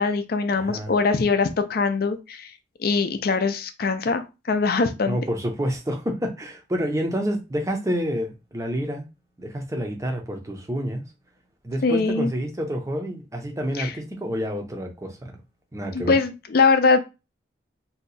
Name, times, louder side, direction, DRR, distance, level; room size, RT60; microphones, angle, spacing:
voice 1, 0.0-2.5 2.8-5.2 11.8-12.3 13.8-13.9 15.9-17.0, left 4 dB, 50° left, 0.4 m, -22 dB
voice 2, 0.5-0.9 5.0-9.1 9.4-11.0 11.6-15.3 15.7-16.2, equal, 15° right, 0.5 m, -28 dB
2.7 x 2.2 x 4.0 m
head